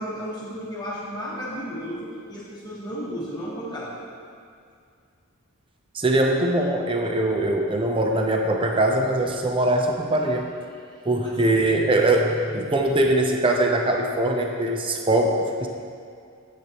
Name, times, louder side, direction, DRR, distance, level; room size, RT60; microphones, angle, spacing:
voice 1, 0.0-4.0 11.2-11.5 15.5-15.7, equal, 20° left, -7 dB, 1.4 m, -33 dB
voice 2, 5.9-10.5 11.0-15.7, right 1 dB, 25° right, 2 dB, 0.6 m, -22 dB
9.7 x 8.4 x 3.0 m, 2.3 s
head